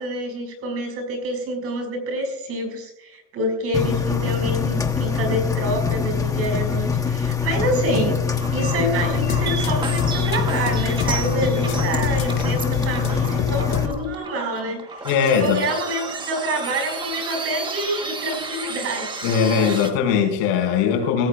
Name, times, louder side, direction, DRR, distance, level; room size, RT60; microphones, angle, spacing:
voice 1, 0.0-19.2, right 1 dB, 40° right, 5.6 m, -27 dB
Engine, 3.7-13.9, left 6 dB, 10° left, 1.2 m, -23 dB
sound 1, 8.4-19.9, right 3 dB, 15° right, 1.2 m, -32 dB
sound 2, 9.0-14.2, left 7 dB, 85° left, 1.5 m, -31 dB
voice 2, 15.0-15.6 19.2-21.3, left 7 dB, 65° left, 5.5 m, -20 dB
23.0 x 16.5 x 2.4 m
cardioid pair, 170°, 35 cm